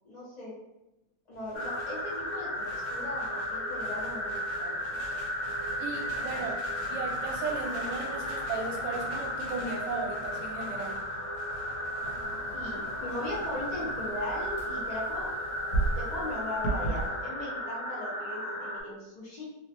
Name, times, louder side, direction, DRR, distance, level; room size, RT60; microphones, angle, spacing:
voice 1, 0.0-0.5 1.3-4.8 6.3-6.4 12.5-15.3 15.9-19.4, left 1 dB, 50° left, -8 dB, 0.5 m, -38 dB
sound 1, 1.3-17.2, equal, 60° right, 0.9 m, -49 dB
sound 2, 1.5-18.8, left 1 dB, 65° left, 1.3 m, -34 dB
voice 2, 5.8-6.5 6.9-11.0, right 4 dB, 80° right, 1 dB, 1.2 m, -36 dB
sound 3, 12.0-17.1, right 2 dB, 85° left, 1.3 m, -35 dB
3.1 x 2.0 x 2.8 m, 0.97 s
omnidirectional pair, 2.0 m